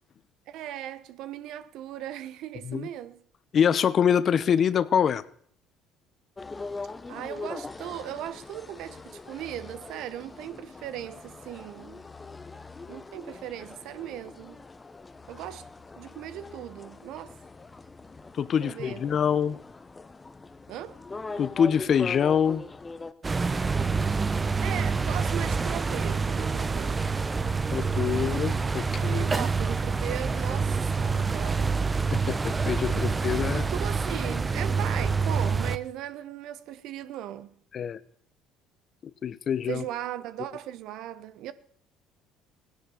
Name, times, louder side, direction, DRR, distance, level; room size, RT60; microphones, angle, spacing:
voice 1, 0.5-3.2 7.1-12.1 12.9-14.6 15.3-15.6 16.0-17.3 18.6-19.2 20.7-21.0 24.6-27.1 29.0-31.8 33.5-37.5 39.7-41.5, right 12 dB, 70° right, 1.0 m, -38 dB
voice 2, 3.5-5.2 18.4-19.6 21.4-22.6 27.7-29.2 32.1-33.7 37.7-38.0 39.2-39.8, left 8 dB, 50° left, 0.9 m, -25 dB
sound 1, 6.4-23.1, left 3 dB, 25° left, 1.0 m, -42 dB
sound 2, 23.2-35.8, right 4 dB, 25° right, 0.9 m, -27 dB
17.0 x 10.5 x 7.0 m
supercardioid pair, 70°, 0 cm